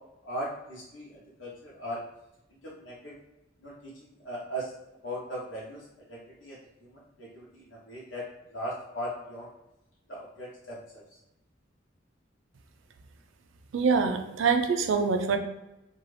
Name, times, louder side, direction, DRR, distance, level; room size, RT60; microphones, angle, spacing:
voice 1, 0.2-2.0 2.5-3.2 3.6-4.7 5.0-8.2 8.5-9.5 10.1-11.2, equal, 75° left, -5 dB, 0.8 m, -39 dB
voice 2, 13.7-15.4, right 5 dB, 85° right, 7 dB, 0.4 m, -25 dB
2.6 x 2.3 x 3.2 m, 0.96 s
head